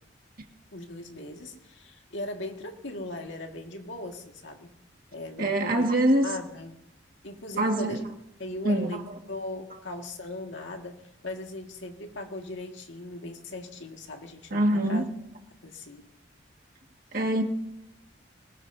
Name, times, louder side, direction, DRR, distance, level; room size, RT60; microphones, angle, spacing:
voice 1, 0.7-4.7 5.1-5.9 6.2-6.7 7.2-8.0 8.4-9.0 9.3-15.0 15.6-16.1, left 1 dB, 70° left, 3 dB, 1.9 m, -38 dB
voice 2, 5.4-6.3 7.6-8.0 8.6-9.2 14.5-15.0 17.1-17.4, right 1 dB, 45° right, 3 dB, 1.8 m, -24 dB
23.0 x 20.0 x 2.7 m, 0.86 s
head